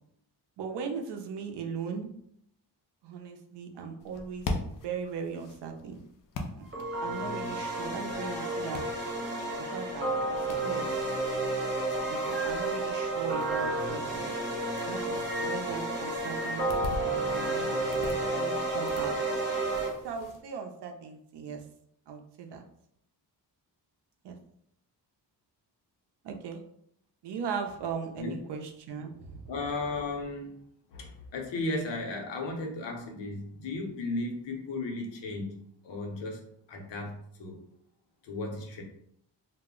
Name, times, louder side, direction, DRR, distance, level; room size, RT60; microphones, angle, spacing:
voice 1, 0.6-2.1 3.0-6.0 6.5-8.8 9.6-11.2 12.1-14.4 14.9-19.2 20.0-21.6 22.1-22.6 24.2-24.4 26.2-26.6 27.2-29.5, right 6 dB, 70° right, 3 dB, 0.5 m, -39 dB
sound 1, 4.0-20.4, left 2 dB, 50° left, 0.4 m, -43 dB
sound 2, 6.6-9.9 10.3-14.1 14.8-17.9, right 1 dB, ahead, 0.5 m, -44 dB
sound 3, 6.7-19.9, right 2 dB, 25° right, 0.8 m, -31 dB
voice 2, 29.5-30.5 30.9-36.4 36.7-37.6 38.2-38.8, left 2 dB, 80° left, 1 dB, 0.7 m, -35 dB
2.1 x 2.0 x 3.6 m, 0.72 s
wide cardioid pair, 125°, 43 cm